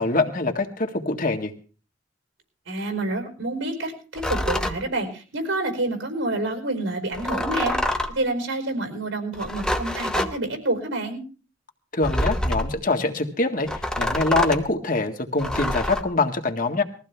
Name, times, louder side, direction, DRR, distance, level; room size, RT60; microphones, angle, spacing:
voice 1, 0.0-1.5 11.9-13.7 14.0-16.8, left 3 dB, 45° left, 4 dB, 1.8 m, -24 dB
voice 2, 2.7-7.8 8.1-11.2, right 2 dB, 90° right, 5 dB, 4.8 m, -28 dB
sound 1, 4.2-4.8 7.1-8.2 9.3-10.3 12.0-12.8 13.7-14.7 15.4-16.0, left 1 dB, 5° left, 1.1 m, -26 dB
21.0 x 15.0 x 3.5 m, 0.38 s
head